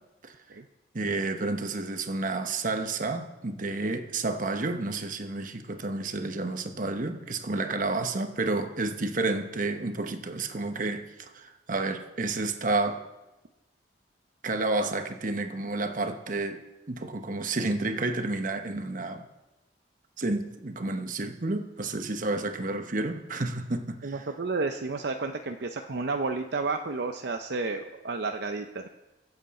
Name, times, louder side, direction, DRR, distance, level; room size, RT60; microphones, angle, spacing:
voice 1, 0.9-13.0 14.4-16.6 16.9-19.3 20.2-24.3, right 2 dB, 45° right, 7 dB, 1.0 m, -30 dB
voice 2, 24.0-28.9, right 3 dB, 65° right, 5 dB, 0.6 m, -31 dB
22.5 x 8.0 x 4.3 m, 1.0 s
head